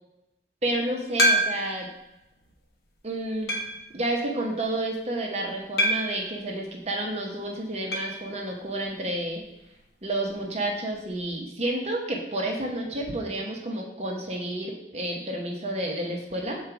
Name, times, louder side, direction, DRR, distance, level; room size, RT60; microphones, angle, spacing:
voice 1, 0.6-1.9 3.0-3.6 3.9-9.4 10.0-16.6, right 1 dB, 35° right, 1 dB, 0.9 m, -30 dB
sound 1, 1.2-1.9 2.5-2.6 3.5-3.9 5.8-6.3 7.9-8.2 8.5-8.6 8.8-8.9 10.9-11.0, equal, 60° left, 1.0 m, -24 dB
6.4 x 3.9 x 4.6 m, 0.90 s
head